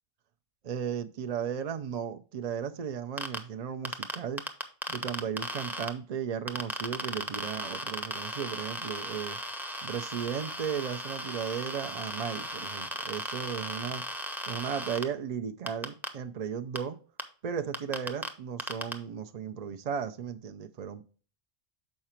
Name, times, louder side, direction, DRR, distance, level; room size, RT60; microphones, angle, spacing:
voice 1, 0.6-4.4 4.9-9.4 9.8-14.0 14.5-17.0 17.4-21.0, right 7 dB, 55° right, 6 dB, 0.5 m, -35 dB
sound 1, 3.2-3.4 3.8-5.9 6.5-15.0 15.7-16.1 16.8-16.9 17.2-17.3 17.7-18.3 18.6-18.9, equal, ahead, 0.5 m, -36 dB
6.5 x 4.8 x 4.3 m, 0.39 s
omnidirectional pair, 1.1 m